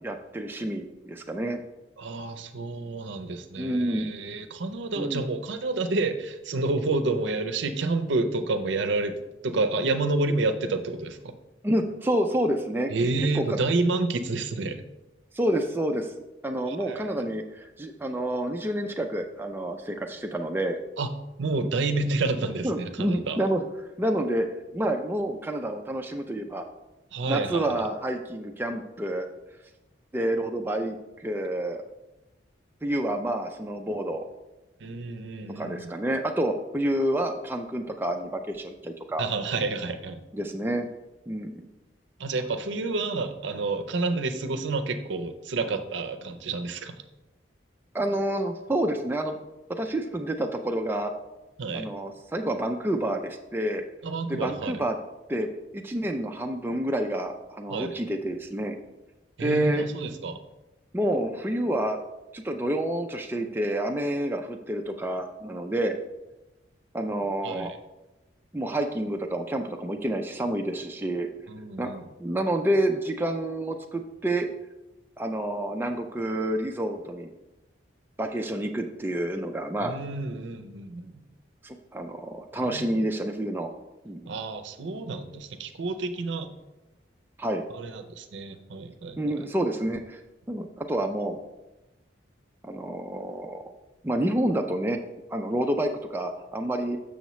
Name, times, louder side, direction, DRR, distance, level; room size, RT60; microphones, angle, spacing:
voice 1, 0.0-1.6 3.6-4.1 5.0-5.2 11.6-12.9 13.3-13.6 15.3-16.1 16.4-20.8 22.6-23.6 24.0-24.5 24.7-26.6 27.3-29.3 30.1-31.8 32.8-34.2 35.6-39.2 40.3-40.9 41.3-41.6 47.9-49.4 49.7-51.1 51.7-53.8 54.3-55.0 55.3-55.5 55.7-58.7 59.4-59.8 60.9-62.0 62.3-65.9 66.9-67.7 68.5-71.3 71.8-71.9 72.2-74.5 75.2-77.3 78.2-80.0 81.6-83.7 84.0-84.3 87.4-87.6 89.2-90.2 90.5-91.4 92.6-93.7 94.0-95.0 95.3-97.0, right 1 dB, 10° right, 3 dB, 0.3 m, -28 dB
voice 2, 2.0-9.2 9.4-11.4 12.9-14.8 16.7-17.2 21.0-21.1 21.4-23.4 27.1-27.9 34.8-35.9 39.2-40.2 42.2-46.9 51.6-51.9 54.0-54.8 57.7-57.9 59.4-60.4 67.4-67.8 71.5-72.1 79.8-81.2 82.5-82.8 84.3-86.5 87.7-89.2, right 3 dB, 70° right, 8 dB, 0.6 m, -29 dB
6.8 x 6.3 x 3.1 m, 1.0 s
head